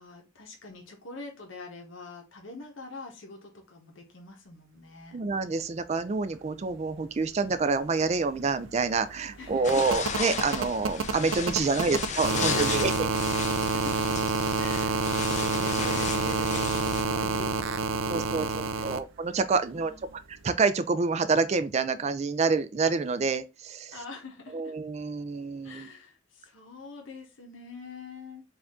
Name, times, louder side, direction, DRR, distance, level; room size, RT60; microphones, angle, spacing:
voice 1, 0.0-5.2 9.4-9.9 11.6-12.0 13.7-14.2 14.6-19.0 19.6-20.2 23.9-24.7 25.6-28.4, left 2 dB, 85° left, 1.1 m, -45 dB
voice 2, 5.1-13.1 18.1-24.0 24.5-25.9, right 4 dB, 35° right, 0.4 m, -27 dB
sound 1, 7.8-7.9 8.1-19.0 20.4-20.5, right 4 dB, 90° right, 0.5 m, -29 dB
sound 2, 9.6-17.0, left 6 dB, 40° left, 0.6 m, -35 dB
4.8 x 2.6 x 3.5 m
head